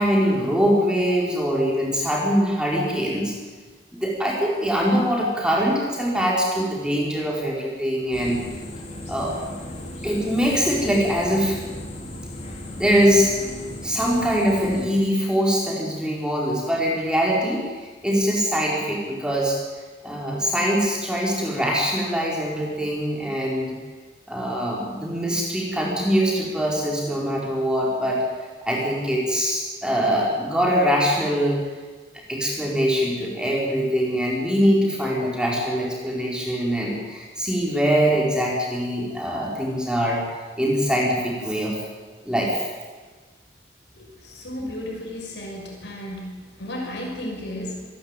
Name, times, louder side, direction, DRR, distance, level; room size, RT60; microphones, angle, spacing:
voice 1, 0.0-3.3 3.9-8.4 9.1-9.5 10.0-11.6 12.8-13.3 13.8-17.7 18.0-19.6 20.0-23.8 24.3-28.2 28.6-31.6 32.3-41.8 42.2-42.7, equal, 5° right, -3 dB, 4.6 m, -23 dB
sound 1, 8.1-14.8, left 1 dB, 35° left, 4.0 m, -36 dB
voice 2, 44.0-47.8, left 1 dB, 90° left, 1 dB, 6.3 m, -34 dB
26.5 x 11.5 x 9.1 m, 1.4 s
head